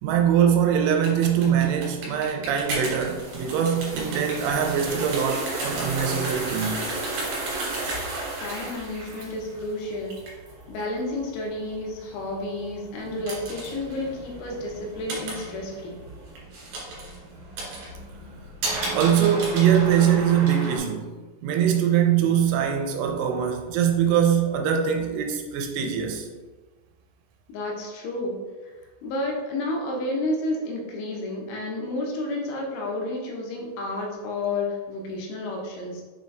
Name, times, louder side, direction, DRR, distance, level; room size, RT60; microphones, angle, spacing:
voice 1, 0.0-6.9 18.9-21.1 21.4-26.3, right 8 dB, 80° right, 3.0 m, -22 dB
sound 1, 0.8-20.8, right 2 dB, 60° right, 3.3 m, -33 dB
voice 2, 8.4-10.2 10.7-16.0 27.5-28.4 29.0-36.0, left 2 dB, 80° left, 3.4 m, -31 dB
7.2 x 4.1 x 3.3 m
omnidirectional pair, 5.6 m